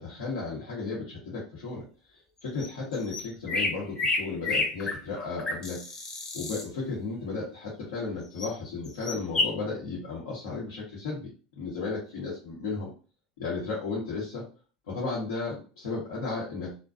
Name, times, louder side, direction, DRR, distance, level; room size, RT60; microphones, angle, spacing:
voice 1, 0.0-1.8 2.1-5.8 6.3-11.2 11.6-12.9 13.4-14.4 14.9-16.7, left 3 dB, 85° left, -6 dB, 0.8 m, -34 dB
sound 1, 2.6-2.7 2.9-6.7 8.4-8.5 8.9-9.5, left 2 dB, 30° left, 0.8 m, -30 dB
2.4 x 2.1 x 2.4 m, 0.36 s
hypercardioid pair, 85°, 2 cm